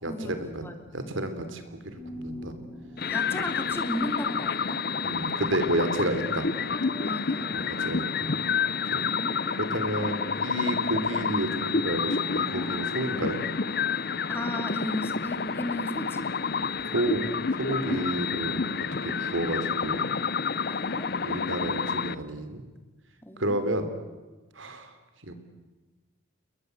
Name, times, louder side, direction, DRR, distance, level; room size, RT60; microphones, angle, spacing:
voice 1, 0.0-0.6 0.9-1.8 2.1-2.5 5.0-6.5 7.5-8.4 8.8-9.1 9.6-13.4 16.9-17.2 17.6-18.7 19.0-20.0 21.2-22.6 23.4-23.9 24.6-24.9 25.2-25.3, right 1 dB, 75° right, 9 dB, 3.7 m, -30 dB
sound 1, 1.8-5.1 6.5-9.4 12.0-14.6 16.6-19.4, left 1 dB, 10° right, 7.7 m, -48 dB
sound 2, 3.0-22.1, left 5 dB, 50° left, 0.8 m, -29 dB
voice 2, 3.0-4.8 7.0-7.5 9.0-9.4 14.3-16.3 17.9-18.1 20.7-21.1 23.2-23.6, equal, 10° left, 6 dB, 2.6 m, -35 dB
29.5 x 22.0 x 8.1 m, 1.3 s
head